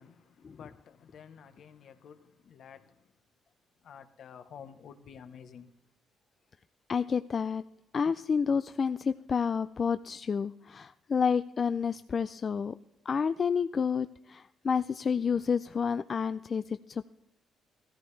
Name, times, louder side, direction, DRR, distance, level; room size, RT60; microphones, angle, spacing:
voice 1, 0.0-3.1 3.8-5.7, left 7 dB, 65° left, 1.0 m, -51 dB
voice 2, 6.9-7.6 7.9-12.7 13.1-17.1, left 6 dB, 45° left, 0.3 m, -29 dB
14.5 x 14.0 x 3.3 m
cardioid pair, 90°, 0 cm